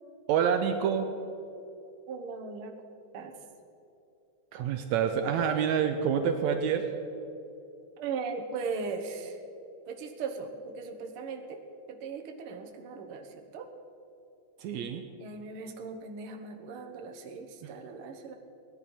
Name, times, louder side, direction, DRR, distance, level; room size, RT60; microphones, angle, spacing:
voice 1, 0.3-1.1 4.5-6.9 14.6-15.0 17.6-17.7, right 7 dB, 80° right, 6 dB, 2.0 m, -27 dB
voice 2, 2.1-2.8 3.1-3.3 8.0-9.4 9.9-11.6 11.9-13.7 15.2-18.4, right 4 dB, 55° right, 4 dB, 1.8 m, -38 dB
18.0 x 11.0 x 5.5 m, 2.7 s
omnidirectional pair, 3.4 m